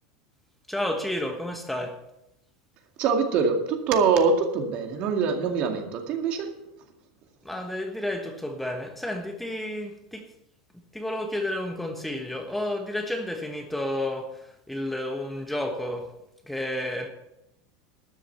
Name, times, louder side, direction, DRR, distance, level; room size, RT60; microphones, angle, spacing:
voice 1, 0.7-2.0 7.4-10.3 10.7-16.1 16.4-17.1, left 1 dB, 5° left, 1.2 m, -31 dB
voice 2, 3.0-6.5, right 5 dB, 50° right, 2.2 m, -24 dB
12.5 x 7.5 x 6.8 m
supercardioid pair, 130°, 3 cm